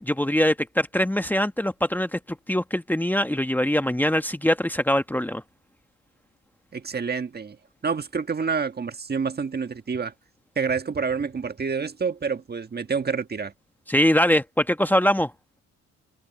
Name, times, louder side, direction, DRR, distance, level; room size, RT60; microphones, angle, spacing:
voice 1, 0.0-5.4 13.9-15.3, equal, 5° left, 1.3 m, -23 dB
voice 2, 6.7-7.6 7.8-10.1 10.5-13.5, right 5 dB, 35° right, 1.6 m, -28 dB
cardioid pair, 90°, 30 cm